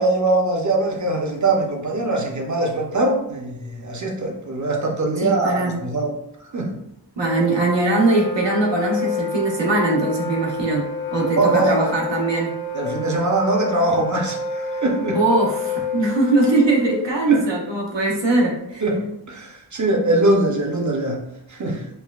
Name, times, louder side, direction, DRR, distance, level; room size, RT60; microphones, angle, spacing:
voice 1, 0.0-6.1 6.5-6.8 11.4-11.9 12.7-15.2 17.3-17.5 18.8-21.9, right 2 dB, 45° right, 2 dB, 0.8 m, -22 dB
voice 2, 5.2-5.8 7.2-12.5 15.1-18.8, right 2 dB, 80° right, -1 dB, 0.9 m, -21 dB
Wind instrument woodwind instrument, 7.2-17.1, left 3 dB, 65° left, 0.7 m, -29 dB
5.4 x 2.1 x 2.3 m, 0.82 s
wide cardioid pair, 55°, 43 cm